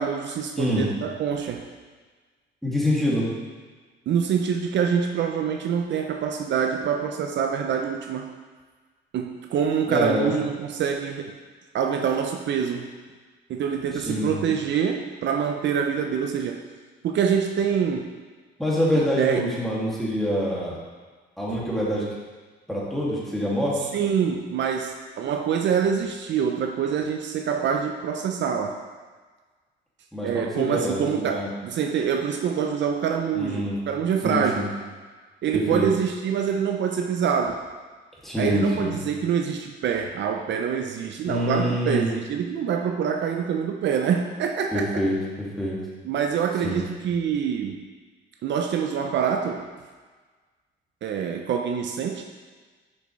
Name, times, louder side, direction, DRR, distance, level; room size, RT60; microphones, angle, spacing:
voice 1, 0.0-1.6 4.1-8.4 9.1-11.3 11.7-12.9 13.5-16.6 17.0-18.1 18.9-19.4 23.9-28.8 30.2-34.7 35.4-37.6 38.4-45.0 46.0-47.8 48.4-49.7 51.0-52.2, right 7 dB, 65° right, 3 dB, 0.6 m, -25 dB
voice 2, 2.6-3.3 9.9-10.4 13.9-14.4 18.6-20.8 21.4-22.0 22.7-23.9 30.1-31.5 33.3-33.8 34.2-34.7 35.5-35.9 38.2-38.9 41.3-42.1 44.7-45.1 45.6-45.8 46.6-46.8, equal, ahead, -6 dB, 2.2 m, -25 dB
7.0 x 6.1 x 3.2 m, 1.4 s
cardioid pair, 90°, 20 cm